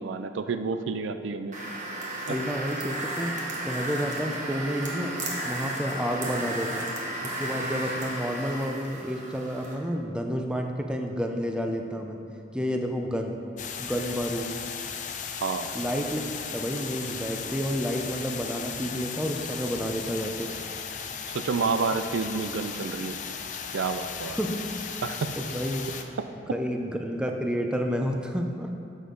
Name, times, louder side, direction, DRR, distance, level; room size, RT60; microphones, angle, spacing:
voice 1, 0.0-1.6 2.3-2.4 15.4-15.7 21.3-23.2 23.7-24.4 25.0-25.4 26.2-26.3, right 4 dB, 85° right, 9 dB, 0.4 m, -29 dB
sound 1, 1.5-9.7, right 1 dB, 40° right, 1.4 m, -34 dB
voice 2, 2.3-3.3 3.7-5.1 5.4-6.9 7.2-12.2 12.5-13.3 13.8-14.5 15.7-16.2 16.5-20.5 24.3-24.6 25.4-25.8 26.5-28.7, equal, 5° right, 3 dB, 0.6 m, -30 dB
sound 2, 13.6-26.0, left 6 dB, 40° left, 0.6 m, -36 dB
12.0 x 6.4 x 3.9 m, 2.5 s
head